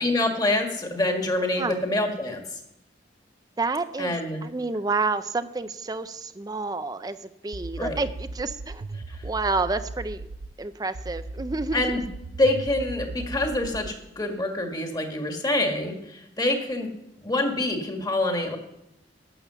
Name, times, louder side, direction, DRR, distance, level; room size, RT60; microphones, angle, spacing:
voice 1, 0.0-2.4 4.0-4.4 7.8-8.0 9.1-9.2 11.7-12.0 12.4-16.9 17.2-18.6, left 2 dB, 20° left, 3 dB, 1.7 m, -26 dB
voice 2, 3.6-8.8 9.2-10.3 10.6-12.0, right 3 dB, 20° right, 12 dB, 0.5 m, -29 dB
sound 1, 7.5-10.5 10.9-14.0, right 2 dB, 65° right, 0.6 m, -37 dB
12.0 x 8.5 x 6.8 m, 0.82 s
head